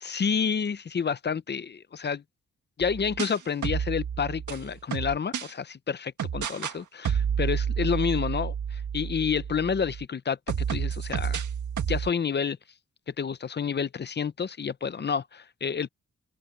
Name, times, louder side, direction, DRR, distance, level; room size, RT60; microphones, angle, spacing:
voice 1, 0.0-2.2 2.8-11.4 11.9-12.6 13.2-15.9, left 6 dB, 35° left, 0.6 m, -29 dB
sound 1, 2.8-5.5 6.2-6.8 7.0-10.0 10.5-12.1, right 8 dB, 80° right, 2.0 m, -30 dB
open air
wide cardioid pair, 165°, 30 cm